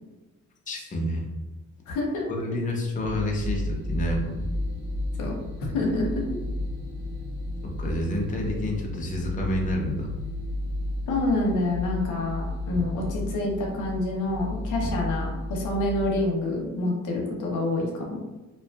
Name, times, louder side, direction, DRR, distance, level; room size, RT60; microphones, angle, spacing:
voice 1, 0.7-1.2 2.3-4.4 7.8-10.1 12.7-12.8 14.8-14.9, equal, 25° left, 0 dB, 0.5 m, -29 dB
voice 2, 1.9-2.3 5.2-5.3 5.6-6.2 11.1-18.2, left 2 dB, 80° left, 0 dB, 0.7 m, -27 dB
sound 1, 3.0-16.2, left 2 dB, 55° right, 1.2 m, -33 dB
2.6 x 2.3 x 2.3 m, 1.1 s
cardioid pair, 90°, 30 cm